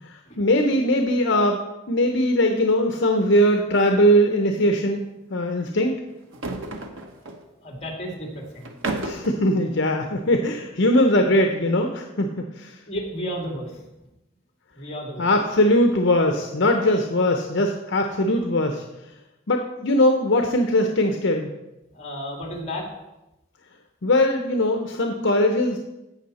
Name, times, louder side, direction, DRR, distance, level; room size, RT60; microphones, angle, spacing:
voice 1, 0.4-1.6 1.9-5.0 5.3-6.0 9.0-12.8 15.2-18.8 19.5-21.5 24.0-25.8, left 1 dB, 65° left, 4 dB, 0.8 m, -20 dB
sound 1, 3.8-4.0 4.2-4.4 6.2-7.4 8.6-9.4, right 2 dB, 75° right, 1.1 m, -32 dB
voice 2, 7.6-8.7 12.9-13.8 14.7-15.3 21.9-22.9, equal, 30° left, 0 dB, 2.2 m, -32 dB
15.5 x 5.6 x 4.2 m, 0.95 s
head